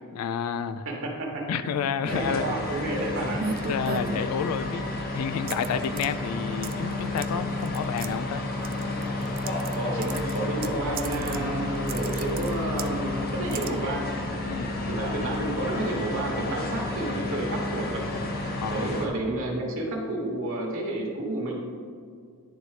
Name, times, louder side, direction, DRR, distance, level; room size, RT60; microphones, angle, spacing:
voice 1, 0.1-0.9 1.5-2.6 3.7-4.8 5.1-8.4 14.4-14.7 18.6-19.0, left 7 dB, 75° left, 15 dB, 0.3 m, -30 dB
voice 2, 0.8-1.3 1.6-1.7 2.0-3.4 9.8-14.1 14.9-18.0 18.7-21.6, right 2 dB, 60° right, 0 dB, 1.1 m, -31 dB
sound 1, 2.0-19.1, left 2 dB, 45° left, 0.8 m, -31 dB
sound 2, 3.4-4.7 5.5-6.1 6.6-6.9 7.2-7.3 7.6-8.1 8.6-9.8 10.0-11.4 11.7-12.9 13.5-13.7, right 6 dB, 40° right, 0.3 m, -35 dB
10.5 x 4.0 x 3.2 m, 2.1 s
head